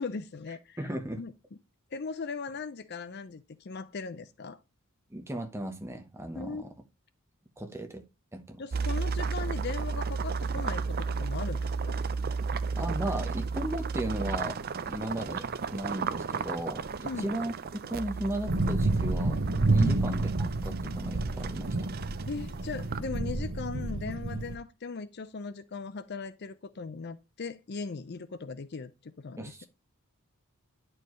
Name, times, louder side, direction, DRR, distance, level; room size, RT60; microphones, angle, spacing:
voice 1, 0.0-0.8 1.2-1.3 1.9-4.6 6.4-6.6 8.6-12.0 17.0-17.3 19.8-20.0 22.3-29.6, left 4 dB, 50° left, 0.5 m, -38 dB
voice 2, 0.8-1.2 5.1-6.7 7.6-8.0 8.3-8.6 12.8-14.6 14.9-17.5 17.9-20.3 20.6-22.0 29.4-29.6, right 1 dB, 10° right, 1.0 m, -36 dB
sound 1, 8.7-23.0, right 5 dB, 45° right, 0.4 m, -34 dB
sound 2, 18.5-24.5, right 2 dB, 65° right, 1.0 m, -29 dB
10.0 x 4.6 x 3.1 m
head